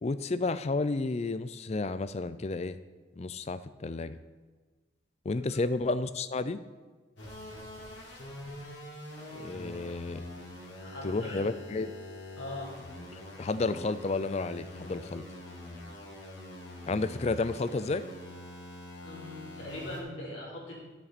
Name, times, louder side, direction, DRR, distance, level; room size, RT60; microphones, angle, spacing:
voice 1, 0.0-2.8 3.2-4.2 5.2-6.6 9.3-10.2 11.0-11.9 13.4-15.2 16.9-18.0, left 3 dB, 35° left, 14 dB, 0.4 m, -31 dB
sound 1, 7.2-20.0, left 1 dB, 70° left, 3.0 m, -45 dB
voice 2, 10.8-11.4 12.4-12.7 19.0-20.7, left 1 dB, 90° left, -4 dB, 3.5 m, -41 dB
12.5 x 7.6 x 4.2 m, 1.4 s
head